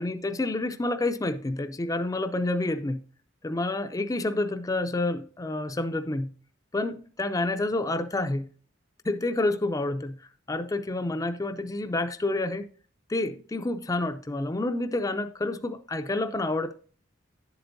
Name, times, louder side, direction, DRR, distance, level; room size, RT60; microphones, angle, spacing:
voice 1, 0.0-3.0 3.4-6.3 6.7-8.5 9.0-10.2 10.5-12.7 13.1-16.7, left 2 dB, 20° left, 0.4 m, -29 dB
11.0 x 7.8 x 2.6 m
head